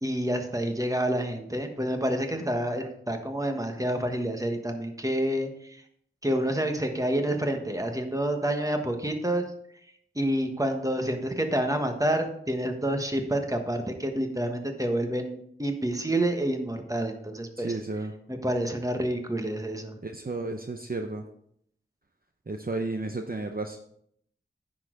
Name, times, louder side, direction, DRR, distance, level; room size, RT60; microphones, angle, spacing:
voice 1, 0.0-5.8 6.2-9.4 10.1-17.7 18.3-20.0, right 1 dB, 15° right, 5 dB, 1.3 m, -28 dB
voice 2, 17.6-18.1 20.0-21.2 22.5-23.8, right 2 dB, 45° right, 5 dB, 0.7 m, -32 dB
9.7 x 6.3 x 3.8 m, 0.68 s
wide cardioid pair, 40°, 21 cm